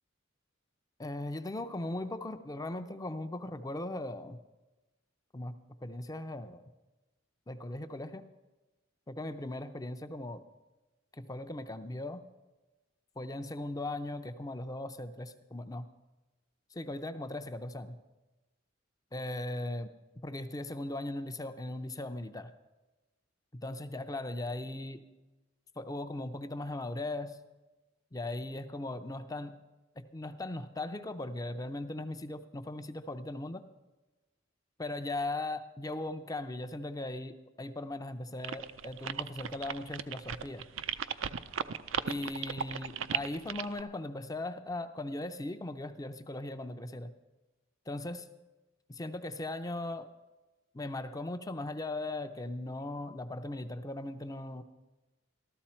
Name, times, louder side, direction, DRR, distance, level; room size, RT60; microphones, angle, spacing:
voice 1, 1.0-4.4 5.3-5.6 5.8-6.6 7.5-8.3 9.1-10.4 11.2-12.2 13.2-15.9 16.7-18.0 19.1-19.9 20.2-22.5 23.5-25.1 25.8-27.4 28.1-29.6 30.0-33.6 34.8-40.6 42.1-47.1 47.9-48.3 48.9-50.1 50.7-54.6, left 2 dB, 20° left, 9 dB, 0.5 m, -38 dB
sound 1, 38.4-43.8, right 8 dB, 80° right, 0.5 m, -36 dB
13.5 x 13.5 x 4.3 m, 1.1 s
head